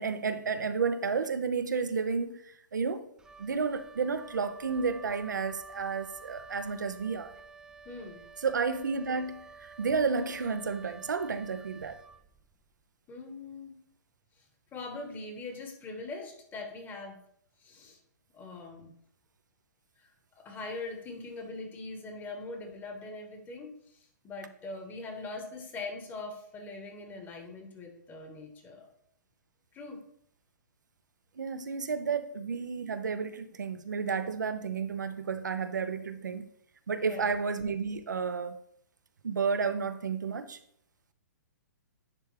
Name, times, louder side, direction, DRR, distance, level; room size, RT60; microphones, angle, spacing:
voice 1, 0.0-3.0 3.4-7.3 8.4-12.0 31.4-36.5 36.9-38.6 39.2-40.6, right 5 dB, 85° right, 0.6 m, -31 dB
Wind instrument woodwind instrument, 3.2-12.7, right 4 dB, 5° right, 0.3 m, -50 dB
voice 2, 7.8-8.2 13.1-13.8 14.4-14.5 14.7-17.2 17.6-18.0 18.3-18.9 20.0-28.9 29.7-30.0 32.0-32.1 37.0-37.4, left 3 dB, 20° left, 1.2 m, -42 dB
9.7 x 3.4 x 3.2 m
hypercardioid pair, 125°, 10 cm